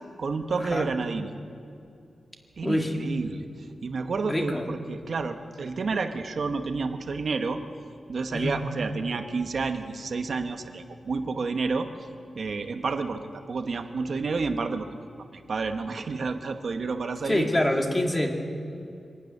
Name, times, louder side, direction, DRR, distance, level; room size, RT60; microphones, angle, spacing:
voice 1, 0.2-1.4 2.6-3.5 3.8-7.6 8.1-11.9 12.3-14.9 15.3-17.5, right 4 dB, 55° right, 6 dB, 1.2 m, -30 dB
voice 2, 2.6-2.9 4.3-4.7 8.3-8.6 17.3-18.3, left 1 dB, 15° left, 2 dB, 2.0 m, -26 dB
24.5 x 12.0 x 9.6 m, 2.5 s
wide cardioid pair, 155°, 0 cm